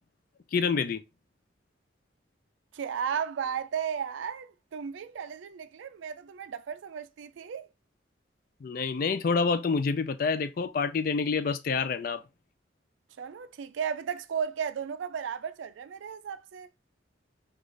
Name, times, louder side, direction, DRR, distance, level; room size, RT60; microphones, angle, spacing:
voice 1, 0.5-1.0 8.6-12.2, left 5 dB, 45° left, 0.3 m, -27 dB
voice 2, 2.7-7.7 13.2-16.7, right 7 dB, 80° right, 0.4 m, -34 dB
3.9 x 2.4 x 3.2 m
head